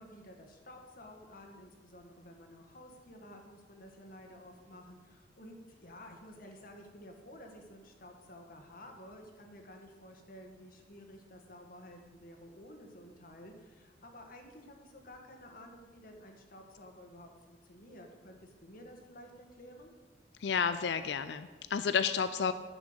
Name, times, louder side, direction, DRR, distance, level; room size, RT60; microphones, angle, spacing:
voice 1, 0.0-5.6 5.8-19.9, left 1 dB, 55° left, 3 dB, 1.7 m, -52 dB
voice 2, 20.4-22.5, left 6 dB, 70° left, 12 dB, 0.4 m, -31 dB
11.0 x 6.0 x 7.9 m, 1.4 s
head